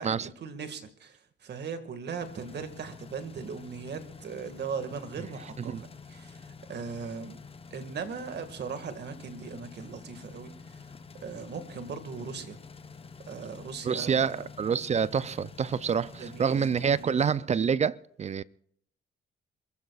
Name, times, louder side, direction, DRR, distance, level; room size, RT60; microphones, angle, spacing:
voice 1, 0.0-7.4 7.7-10.8 11.2-12.6 13.3-14.5 16.2-16.7 17.0-17.3, right 5 dB, 60° right, 2.0 m, -39 dB
sound 1, 2.2-17.0, left 4 dB, 30° left, 0.9 m, -48 dB
voice 2, 13.8-18.4, right 7 dB, 35° right, 0.5 m, -27 dB
28.0 x 15.0 x 2.4 m
cardioid pair, 90°, 20 cm